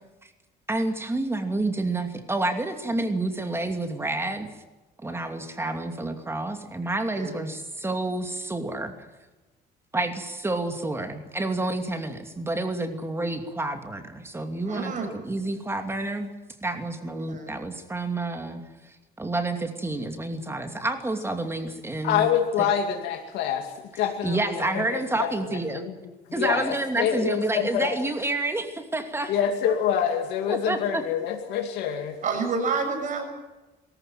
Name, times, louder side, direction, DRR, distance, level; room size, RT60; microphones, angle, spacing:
voice 1, 0.7-4.5 5.0-8.9 9.9-16.3 16.6-22.3 22.6-22.7 24.2-25.9 26.3-29.3 30.5-31.0, right 2 dB, 15° right, 6 dB, 2.7 m, -29 dB
voice 2, 7.1-7.4 14.6-15.1 17.1-17.5 32.2-33.2, right 4 dB, 50° right, 4 dB, 6.7 m, -29 dB
voice 3, 22.0-23.7 24.0-25.9 26.3-27.9 29.3-32.1, left 8 dB, 85° left, 3 dB, 2.5 m, -26 dB
23.0 x 14.0 x 9.3 m, 1.1 s
cardioid pair, 110°, 17 cm